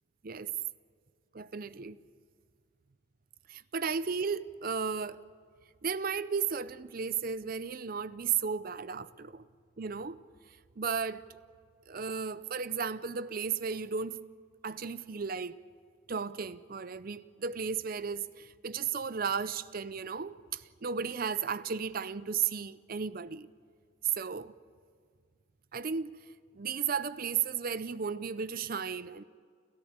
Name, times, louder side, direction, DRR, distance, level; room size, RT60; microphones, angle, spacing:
voice 1, 1.3-2.0 3.5-5.2 5.8-9.4 9.8-10.2 10.8-11.2 11.9-14.2 14.6-15.5 16.1-23.5 24.0-24.5 25.7-26.1 26.5-29.2, right 6 dB, 45° right, 0.5 m, -34 dB
29.5 x 13.5 x 8.7 m
head